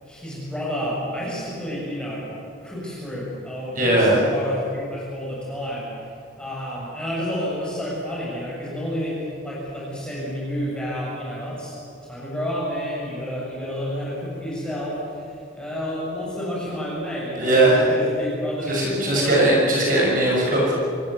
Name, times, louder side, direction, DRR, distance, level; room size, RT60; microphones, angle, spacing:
voice 1, 0.0-2.3 2.6-5.9 6.4-11.7 12.0-19.5, equal, 5° left, -6 dB, 7.3 m, -30 dB
voice 2, 3.7-4.2 17.4-17.8 18.7-20.7, right 1 dB, 45° right, -3 dB, 6.7 m, -19 dB
25.5 x 15.5 x 9.7 m, 2.5 s
head